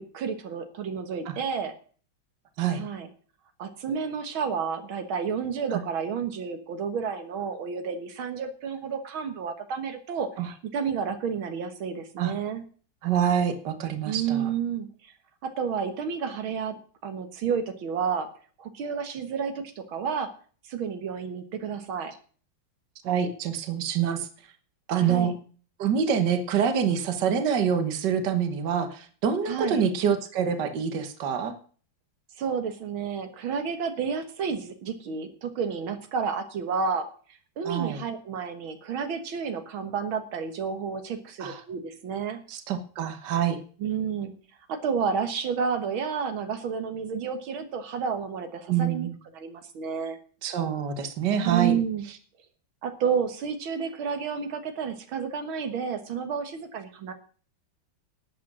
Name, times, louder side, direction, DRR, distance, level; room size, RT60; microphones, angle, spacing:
voice 1, 0.0-1.7 2.7-3.1 3.6-12.6 14.0-15.1 15.4-18.3 18.6-20.3 20.6-22.1 25.0-25.3 29.5-29.8 32.4-37.1 37.6-42.4 43.8-44.3 44.7-49.1 49.3-50.2 51.4-52.1 52.8-57.1, right 6 dB, 85° right, 7 dB, 2.2 m, -30 dB
voice 2, 13.0-14.5 23.0-24.3 24.9-25.3 25.8-31.5 37.7-38.0 41.4-41.6 42.5-43.6 48.7-49.1 50.4-51.7, right 7 dB, 60° right, 9 dB, 1.9 m, -26 dB
12.5 x 8.8 x 6.1 m, 0.43 s
omnidirectional pair, 2.2 m